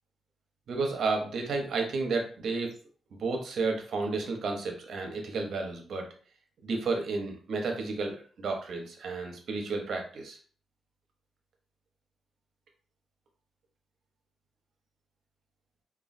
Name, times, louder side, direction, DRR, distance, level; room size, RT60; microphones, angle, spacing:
voice 1, 0.7-2.7 3.1-6.1 6.6-10.4, right 3 dB, 65° right, 3 dB, 0.7 m, -32 dB
3.0 x 2.2 x 2.5 m, 0.43 s
cardioid pair, 120°, 0 cm